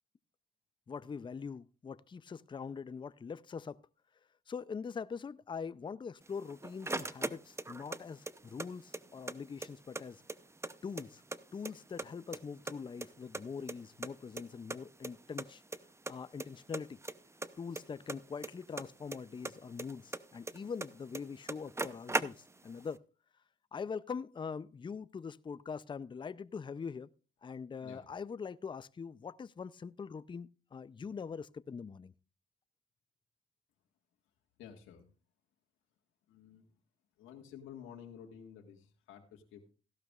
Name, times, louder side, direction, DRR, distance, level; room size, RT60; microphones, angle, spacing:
voice 1, 0.9-3.8 4.5-10.2 10.8-11.2 11.5-15.6 16.1-17.0 17.6-23.0 23.7-27.1 27.4-32.1, left 5 dB, 25° left, 0.5 m, -43 dB
sound 1, 6.3-8.0 8.3-9.4 9.6-9.7 10.0-11.4 11.6-12.4 12.7-14.1 14.4-14.5 14.7-14.8 15.0-15.1 15.4-15.8 16.1-16.5 16.7-19.2 19.4-20.9 21.1-21.2 21.5-22.7, right 2 dB, 15° right, 0.7 m, -38 dB
voice 2, 34.6-35.1 36.3-36.7 37.2-39.7, left 8 dB, 90° left, 1.7 m, -52 dB
16.0 x 12.0 x 2.4 m
cardioid pair, 90°, 20 cm